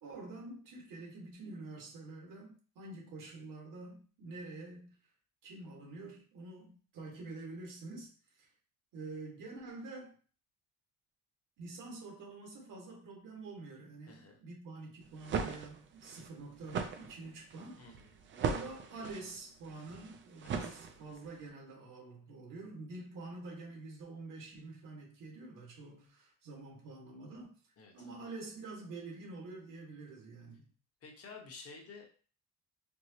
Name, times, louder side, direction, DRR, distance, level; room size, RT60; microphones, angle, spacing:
voice 1, 0.0-5.0 5.4-8.5 8.9-10.1 11.6-17.8 18.3-27.6 27.9-30.7, right 3 dB, 65° right, 1.5 m, -47 dB
voice 2, 14.1-14.4 17.8-18.1 20.4-20.7 27.8-28.2 31.0-32.2, left 4 dB, 45° left, 0.9 m, -52 dB
sound 1, 15.0-21.3, right 6 dB, 35° right, 0.4 m, -39 dB
4.5 x 2.0 x 2.8 m
cardioid pair, 140°, 35 cm